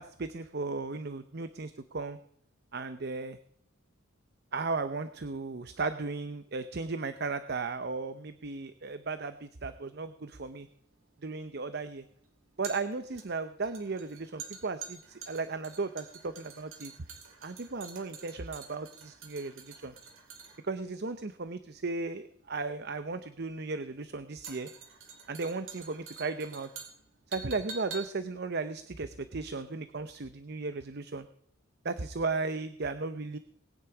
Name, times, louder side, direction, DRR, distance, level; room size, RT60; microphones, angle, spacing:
voice 1, 0.0-2.2 2.7-3.4 4.5-10.7 11.2-12.0 12.6-16.9 17.4-19.9 20.6-24.7 25.3-26.7 27.3-31.3 31.8-33.4, right 3 dB, 50° right, 11 dB, 0.7 m, -36 dB
sound 1, 10.5-29.8 30.0-30.2, right 5 dB, 70° right, 3.3 m, -48 dB
20.0 x 9.8 x 4.9 m, 0.67 s
head